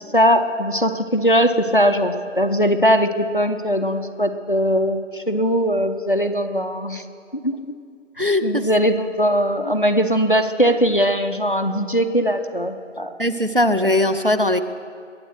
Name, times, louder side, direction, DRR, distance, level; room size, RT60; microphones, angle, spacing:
voice 1, 0.1-7.0 7.4-7.8 8.4-13.1, equal, 45° left, 6 dB, 0.7 m, -20 dB
voice 2, 13.2-14.6, left 1 dB, 45° right, 10 dB, 0.5 m, -19 dB
21.0 x 8.2 x 6.3 m, 2.3 s
figure-of-eight pair, 175°, 38 cm